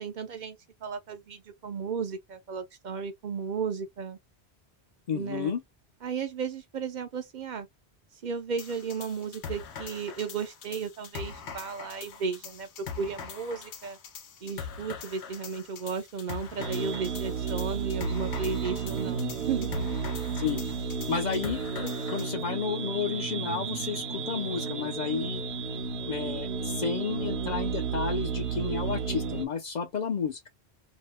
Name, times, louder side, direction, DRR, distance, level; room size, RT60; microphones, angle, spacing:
voice 1, 0.0-4.2 5.1-5.5 6.0-7.7 8.2-12.7 13.0-14.0 14.4-19.7, right 5 dB, 55° right, 0.5 m, -34 dB
voice 2, 5.1-5.6 20.3-20.6 21.1-25.4 26.1-30.5, left 6 dB, 55° left, 0.5 m, -32 dB
sound 1, 8.6-22.3, left 6 dB, 90° left, 1.0 m, -42 dB
sound 2, 16.6-29.4, right 5 dB, 75° right, 0.9 m, -32 dB
3.0 x 2.0 x 3.3 m
omnidirectional pair, 1.1 m